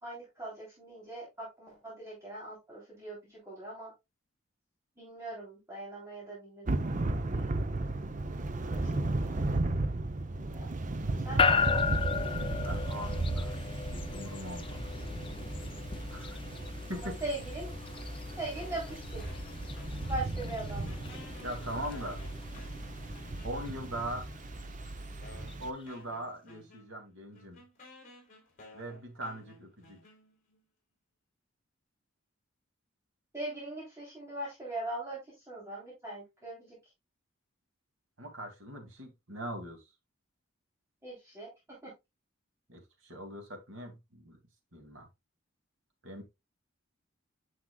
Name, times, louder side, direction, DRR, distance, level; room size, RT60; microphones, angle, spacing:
voice 1, 0.0-3.9 5.0-7.5 8.6-9.4 10.4-12.3 16.9-17.8 18.4-19.2 20.1-21.0 33.3-36.8 41.0-41.5 41.8-41.9, right 2 dB, 15° right, 3.5 m, -41 dB
Thunder / Rain, 6.7-25.7, right 2 dB, 40° right, 0.7 m, -35 dB
voice 2, 8.6-8.9 12.6-13.5 13.9-14.8 16.1-16.4 16.9-17.2 21.4-22.2 23.4-24.2 25.6-27.6 28.7-30.0 38.2-39.8 42.7-44.4 44.7-45.1 46.0-46.2, right 1 dB, 75° right, 2.5 m, -41 dB
sound 1, 11.4-25.7, left 5 dB, 25° left, 0.4 m, -36 dB
sound 2, 18.5-20.4 20.7-23.9 24.6-24.7 25.2-30.6, left 2 dB, 40° left, 4.1 m, -55 dB
9.7 x 6.0 x 2.3 m
head